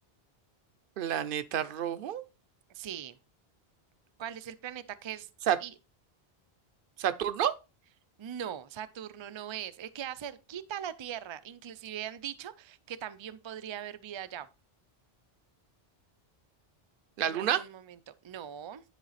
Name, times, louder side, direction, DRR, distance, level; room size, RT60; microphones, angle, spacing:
voice 1, 1.0-2.2 5.5-5.6 7.0-7.5 17.2-17.6, right 10 dB, 65° right, 0.8 m, -29 dB
voice 2, 2.7-3.2 4.2-5.3 5.6-5.7 8.2-14.5 17.2-18.8, right 10 dB, 40° right, 0.4 m, -40 dB
10.5 x 3.9 x 4.1 m
omnidirectional pair, 1.0 m